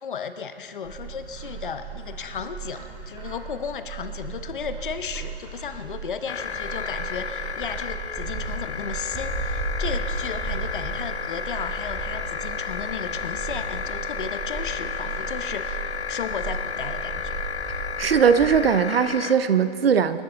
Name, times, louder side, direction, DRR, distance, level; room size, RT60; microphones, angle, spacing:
voice 1, 0.0-17.4, left 6 dB, 50° left, 10 dB, 1.1 m, -34 dB
Bird, 0.8-18.6, right 4 dB, 10° right, 2.2 m, -35 dB
sound 1, 6.3-19.3, left 6 dB, 75° left, 0.9 m, -32 dB
voice 2, 18.0-20.2, right 7 dB, 60° right, 12 dB, 0.8 m, -19 dB
27.5 x 11.0 x 4.0 m, 2.6 s
figure-of-eight pair, 145°, 33 cm